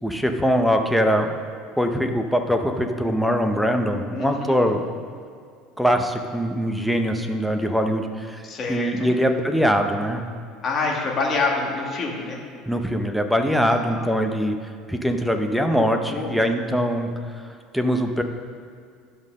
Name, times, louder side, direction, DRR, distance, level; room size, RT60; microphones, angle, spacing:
voice 1, 0.0-1.4 1.8-4.8 5.8-10.2 12.7-14.6 14.9-17.1 17.7-18.2, equal, ahead, 5 dB, 0.6 m, -22 dB
voice 2, 4.1-4.7 8.4-9.1 10.6-12.4 13.7-14.1 16.1-16.5, left 3 dB, 25° left, -1 dB, 1.4 m, -27 dB
10.5 x 5.5 x 6.4 m, 2.3 s
cardioid pair, 165°, 0 cm